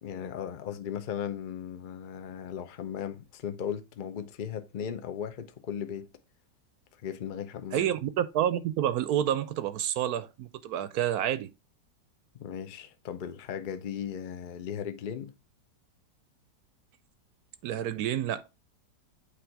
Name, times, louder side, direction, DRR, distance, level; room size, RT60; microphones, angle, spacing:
voice 1, 0.0-6.1 7.0-7.9 12.3-15.3, left 8 dB, 65° left, 0.5 m, -37 dB
voice 2, 7.7-11.5 17.6-18.4, right 10 dB, 70° right, 1.0 m, -29 dB
8.5 x 3.1 x 4.5 m
omnidirectional pair, 1.9 m